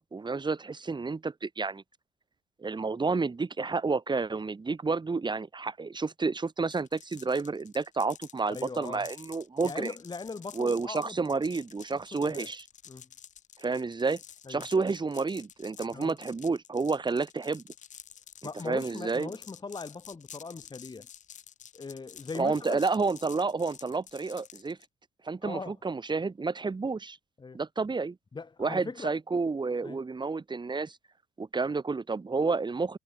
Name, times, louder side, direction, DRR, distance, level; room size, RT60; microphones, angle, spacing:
voice 1, 0.0-1.8 2.6-9.9 10.5-12.6 13.6-14.2 14.5-17.6 18.6-19.3 22.3-24.8 25.2-27.2 27.5-28.2 28.6-31.0 31.4-33.0, right 4 dB, 30° right, 3.4 m, -30 dB
sound 1, 6.7-24.9, left 9 dB, 60° left, 7.4 m, -50 dB
voice 2, 8.5-9.1 9.6-11.4 12.2-12.5 12.9-13.1 14.4-14.7 15.9-16.2 18.4-21.1 21.7-22.8 25.4-25.7 27.4-27.6 28.3-29.1 29.8-30.0, left 4 dB, 30° left, 3.1 m, -40 dB
hypercardioid pair, 50°, 14 cm